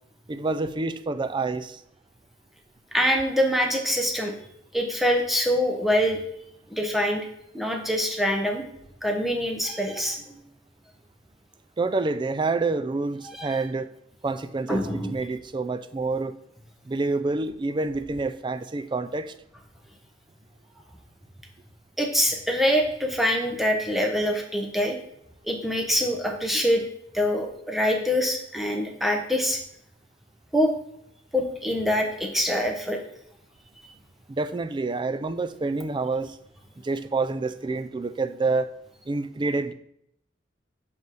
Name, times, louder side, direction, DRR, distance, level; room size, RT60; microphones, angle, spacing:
voice 1, 0.3-1.8 11.8-13.9 14.2-16.3 16.9-19.3 34.3-36.4 36.8-38.7 39.1-39.7, right 3 dB, 25° right, 0.3 m, -28 dB
voice 2, 2.9-4.3 4.7-6.2 6.7-7.2 7.5-8.6 9.0-10.2 13.3-13.6 14.7-15.2 22.0-25.0 25.4-26.8 27.1-29.6 30.5-30.7 31.3-33.0, equal, ahead, 1.0 m, -24 dB
5.3 x 5.3 x 6.2 m
head